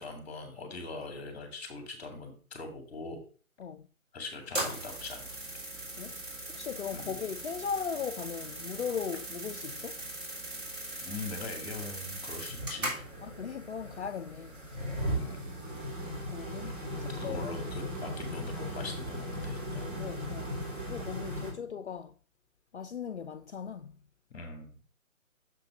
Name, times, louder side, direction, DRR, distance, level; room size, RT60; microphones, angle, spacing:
voice 1, 0.0-3.2 4.1-5.3 6.9-7.2 11.0-13.1 15.1-15.6 16.9-19.9 21.2-21.7 24.3-24.8, left 3 dB, 10° left, 1.6 m, -42 dB
sound 1, 4.4-21.5, equal, 40° right, 3.1 m, -38 dB
voice 2, 6.5-10.0 13.2-14.6 16.0-16.8 17.2-17.5 20.0-20.5 20.9-22.1 22.7-23.9, left 7 dB, 55° left, 0.5 m, -38 dB
6.6 x 3.9 x 5.5 m
figure-of-eight pair, 160°, 42 cm